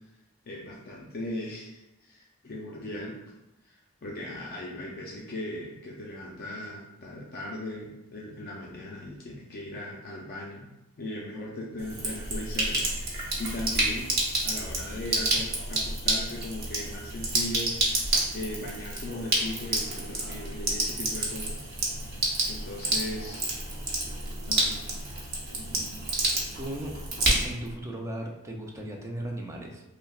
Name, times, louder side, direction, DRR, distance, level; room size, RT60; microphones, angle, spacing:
voice 1, 0.5-3.2 3.6-14.1 14.4-21.6 22.5-23.6 24.5-24.8, left 1 dB, 50° left, -3 dB, 0.5 m, -38 dB
Sink (filling or washing), 11.8-27.7, right 2 dB, 50° right, 0.9 m, -29 dB
voice 2, 26.5-27.0 27.4-29.8, right 1 dB, 15° right, 0 dB, 0.5 m, -36 dB
5.5 x 2.1 x 2.4 m, 0.95 s
head